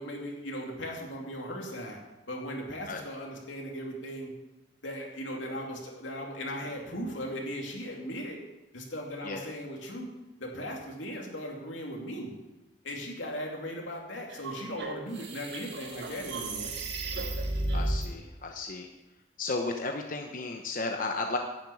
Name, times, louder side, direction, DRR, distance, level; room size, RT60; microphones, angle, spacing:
voice 1, 0.0-2.0 2.3-4.3 4.8-8.4 8.7-10.1 10.4-12.3 12.8-16.7, equal, 80° left, 0 dB, 2.6 m, -38 dB
sound 1, 14.3-18.1, right 2 dB, 60° right, 2.0 m, -33 dB
voice 2, 17.7-18.9 19.4-21.4, left 3 dB, 45° left, 3 dB, 1.0 m, -33 dB
11.0 x 7.4 x 8.6 m, 1.0 s
head